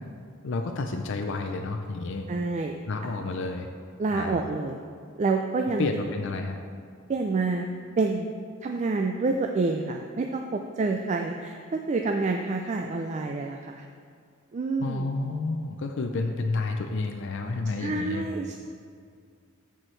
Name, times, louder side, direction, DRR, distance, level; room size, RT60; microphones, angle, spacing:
voice 1, 0.4-2.3 2.9-3.7 4.1-4.4 5.8-6.6 14.8-18.3, left 3 dB, 60° left, 4 dB, 0.5 m, -30 dB
voice 2, 2.3-2.7 4.0-4.8 5.2-5.9 7.1-7.7 8.0-8.3 8.6-13.8 14.5-15.1 17.8-18.6, right 3 dB, 35° right, 3 dB, 0.3 m, -28 dB
13.5 x 4.6 x 3.2 m, 2.2 s
head